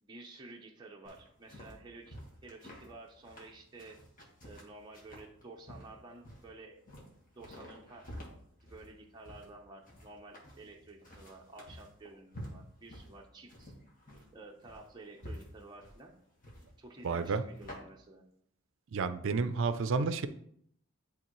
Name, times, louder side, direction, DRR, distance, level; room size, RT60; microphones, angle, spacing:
voice 1, 0.0-4.0 4.4-6.8 7.4-8.0 8.6-13.7 14.3-16.1 16.8-18.3, right 2 dB, 20° right, -1 dB, 0.7 m, -52 dB
sound 1, 1.0-17.8, equal, 40° left, 1.6 m, -50 dB
voice 2, 17.0-17.4 18.9-20.3, right 4 dB, 65° right, 12 dB, 0.5 m, -30 dB
10.5 x 3.6 x 3.1 m, 0.68 s
head